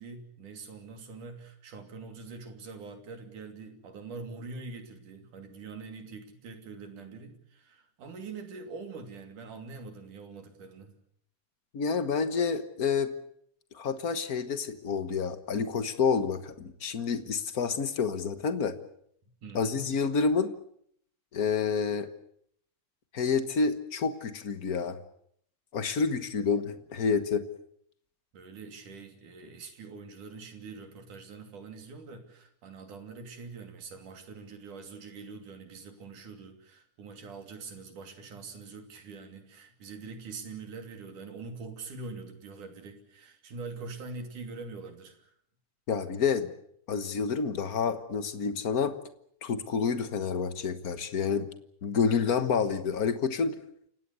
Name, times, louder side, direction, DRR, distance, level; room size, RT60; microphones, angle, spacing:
voice 1, 0.0-10.9 19.2-19.9 26.4-26.5 28.3-45.3, right 4 dB, 70° right, 6 dB, 4.4 m, -44 dB
voice 2, 11.7-13.1 13.7-18.8 19.5-20.5 21.3-22.1 23.1-25.0 25.7-27.4 45.9-46.5 46.9-49.0 49.4-51.5 51.8-53.6, left 5 dB, 75° left, 10 dB, 0.8 m, -28 dB
29.5 x 17.0 x 8.2 m, 0.68 s
omnidirectional pair, 3.8 m